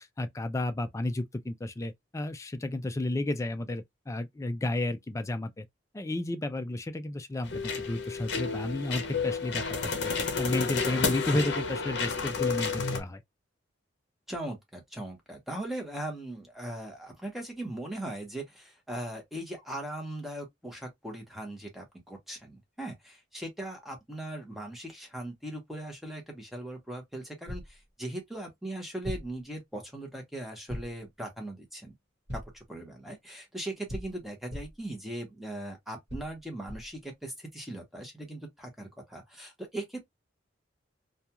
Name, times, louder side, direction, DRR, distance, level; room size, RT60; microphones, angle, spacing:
voice 1, 0.0-5.7 5.9-13.2, left 2 dB, 15° left, 0.3 m, -32 dB
sound 1, 7.4-13.0, left 4 dB, 60° left, 0.7 m, -31 dB
voice 2, 14.3-31.9 32.3-40.0, right 1 dB, ahead, 0.8 m, -39 dB
sound 2, 27.5-27.8 29.0-29.4 30.7-31.1 32.3-32.7 33.9-34.9 36.1-37.0, left 1 dB, 55° right, 1.1 m, -40 dB
2.3 x 2.2 x 2.8 m
head